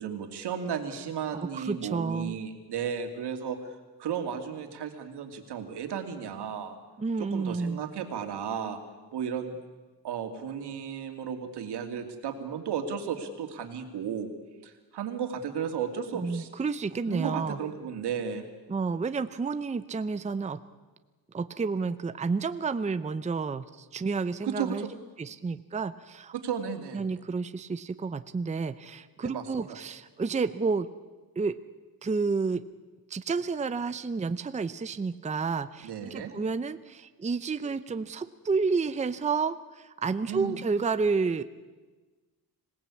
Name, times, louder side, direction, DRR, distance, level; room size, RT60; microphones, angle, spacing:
voice 1, 0.0-6.8 7.2-8.8 9.1-9.6 10.0-14.3 14.6-16.5 17.0-18.4 24.4-24.9 26.3-27.0 29.2-29.8 35.8-36.3 40.3-40.6, right 7 dB, 80° right, 5 dB, 2.7 m, -34 dB
voice 2, 1.3-2.4 7.0-7.8 16.1-17.6 18.7-20.6 21.3-24.9 25.2-26.3 26.9-30.9 31.4-31.5 32.0-32.6 33.1-41.4, right 4 dB, 20° right, 11 dB, 0.6 m, -30 dB
25.5 x 18.0 x 8.5 m, 1.3 s
cardioid pair, 125°, 39 cm